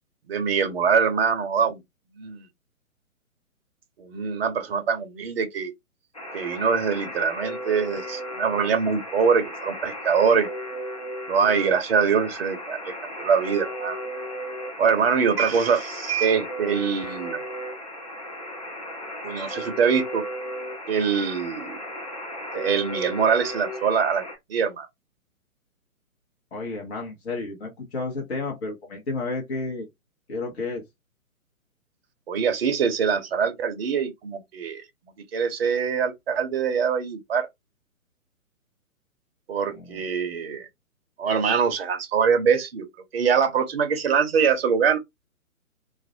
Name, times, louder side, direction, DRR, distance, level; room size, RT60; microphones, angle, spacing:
voice 1, 0.3-1.8 2.2-2.5 4.0-5.7 6.3-10.5 11.3-14.0 14.8-17.4 19.2-20.2 20.9-21.8 22.5-24.2 24.5-24.9 32.3-34.8 35.3-37.5 39.5-40.7 41.2-42.9 43.1-45.0, right 6 dB, 45° right, 0.5 m, -23 dB
Alarm, 6.1-24.4, equal, 30° left, 0.4 m, -35 dB
voice 2, 26.5-29.9 30.3-30.8 39.7-40.0, left 3 dB, 50° left, 0.9 m, -31 dB
2.4 x 2.0 x 2.6 m
figure-of-eight pair, 130°, 43 cm